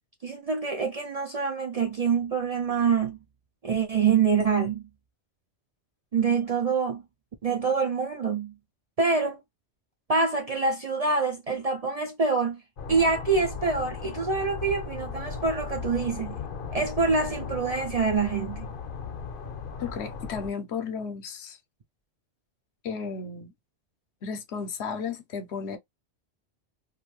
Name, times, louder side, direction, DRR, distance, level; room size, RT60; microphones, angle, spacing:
voice 1, 0.2-3.2 3.6-4.9 6.1-7.0 7.4-8.5 9.0-9.4 10.1-12.6 12.9-16.4 16.7-18.7, right 5 dB, 50° right, 0.5 m, -26 dB
sound 1, 12.8-20.5, left 5 dB, 60° left, 0.8 m, -37 dB
voice 2, 19.8-21.6 22.8-23.5 24.2-25.8, left 5 dB, 75° left, 1.0 m, -34 dB
2.5 x 2.4 x 3.1 m
omnidirectional pair, 1.2 m